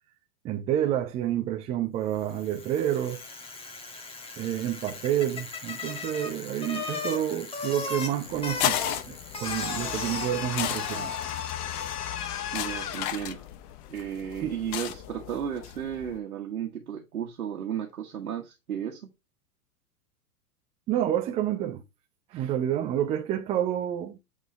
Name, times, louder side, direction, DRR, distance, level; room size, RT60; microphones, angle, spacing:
voice 1, 0.4-3.2 4.4-11.1 14.4-14.6 20.9-21.8 22.3-24.2, right 11 dB, 15° right, 0.4 m, -29 dB
Bicycle, 2.2-11.6, left 3 dB, 10° left, 1.3 m, -38 dB
sound 1, 8.2-16.2, left 11 dB, 35° left, 0.7 m, -35 dB
sound 2, 9.4-13.2, left 9 dB, 75° left, 0.7 m, -34 dB
voice 2, 12.5-13.4 13.9-19.1, right 9 dB, 70° right, 1.6 m, -34 dB
8.7 x 3.8 x 2.9 m
figure-of-eight pair, 100°, 46 cm